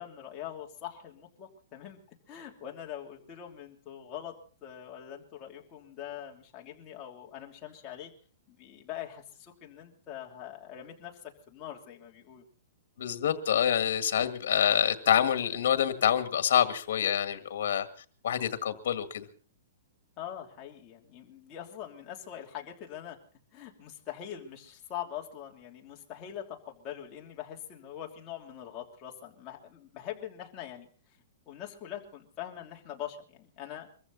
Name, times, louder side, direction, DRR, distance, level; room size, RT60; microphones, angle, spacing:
voice 1, 0.0-2.0 2.3-4.3 4.6-8.1 8.5-12.4 20.2-23.2 23.5-30.9 31.5-33.9, left 10 dB, 25° left, -1 dB, 3.1 m, -43 dB
voice 2, 13.0-17.9 18.2-19.2, left 9 dB, 70° left, 9 dB, 2.0 m, -26 dB
24.0 x 15.0 x 4.1 m, 0.41 s
hypercardioid pair, 160°, 0 cm